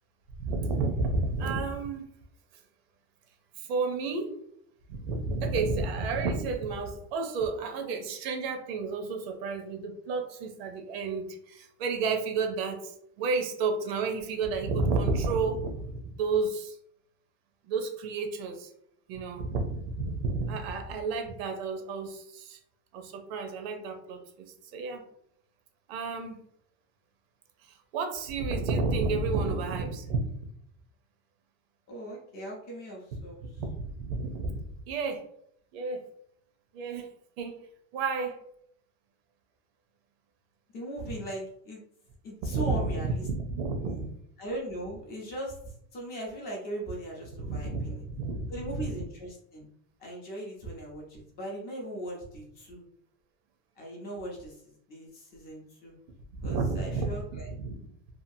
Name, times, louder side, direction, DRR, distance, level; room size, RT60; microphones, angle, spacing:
voice 1, 0.4-2.1 3.6-4.4 4.9-15.9 16.1-16.8 17.6-18.7 19.1-22.6 22.9-25.0 25.9-26.4 27.7-30.2 33.6-35.2 35.7-36.1 36.7-37.1 37.4-37.6 37.9-38.4 42.4-44.1 47.4-48.9 56.4-57.8, right 4 dB, 55° right, 4 dB, 0.7 m, -31 dB
voice 2, 31.9-33.6 40.7-41.8 42.2-43.2 44.4-48.0 48.5-49.7 50.0-52.8 53.8-55.9 56.4-57.5, right 1 dB, 25° left, -1 dB, 0.7 m, -39 dB
2.8 x 2.4 x 2.6 m, 0.70 s
supercardioid pair, 170°, 36 cm